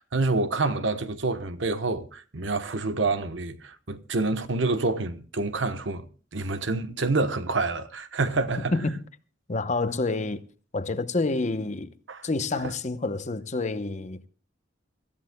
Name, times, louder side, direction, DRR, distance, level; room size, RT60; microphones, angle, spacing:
voice 1, 0.0-6.1 6.3-8.7 12.1-12.2, right 3 dB, 75° right, 1.0 m, -27 dB
voice 2, 8.7-9.0 9.5-10.4 10.7-11.9 12.2-14.3, left 3 dB, 40° left, 0.8 m, -28 dB
25.0 x 14.0 x 2.2 m
head